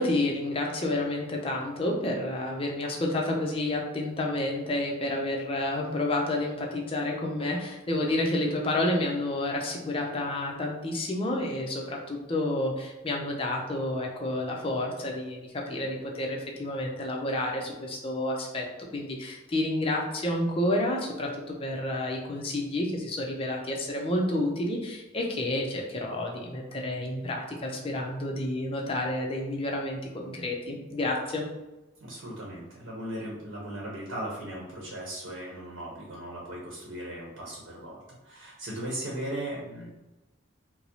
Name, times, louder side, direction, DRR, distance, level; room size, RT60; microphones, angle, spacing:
voice 1, 0.0-18.7 18.9-31.4, left 1 dB, 25° left, 0 dB, 0.5 m, -30 dB
voice 2, 32.0-39.9, right 1 dB, 75° right, -4 dB, 0.8 m, -37 dB
4.4 x 2.0 x 2.7 m, 1.0 s
head